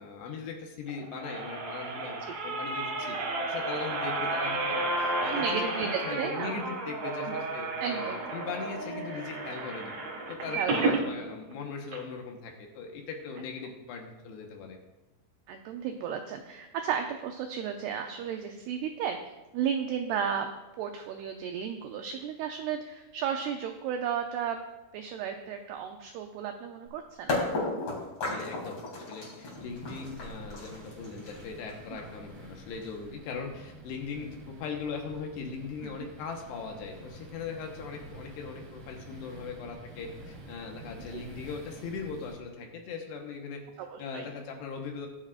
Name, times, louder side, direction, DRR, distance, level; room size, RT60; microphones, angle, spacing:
voice 1, 0.0-3.2 3.5-9.9 10.3-14.8 28.2-43.6 44.0-45.1, left 5 dB, 75° left, 2 dB, 3.0 m, -39 dB
sound 1, 0.9-11.0 11.5-11.6 11.9-12.0, right 2 dB, 70° right, 1.6 m, -32 dB
voice 2, 5.3-6.6 7.8-8.2 10.6-11.0 15.5-19.2 19.5-20.5 20.8-24.6 24.9-27.4 35.8-36.1 41.1-41.3 43.8-44.3, right 8 dB, 85° right, 5 dB, 2.3 m, -34 dB
sound 2, 26.9-27.0 27.3-33.1, left 2 dB, 35° left, 3.1 m, -34 dB
sound 3, 29.5-42.3, right 1 dB, 45° right, 1.8 m, -49 dB
21.5 x 7.3 x 2.5 m, 1.1 s
omnidirectional pair, 5.3 m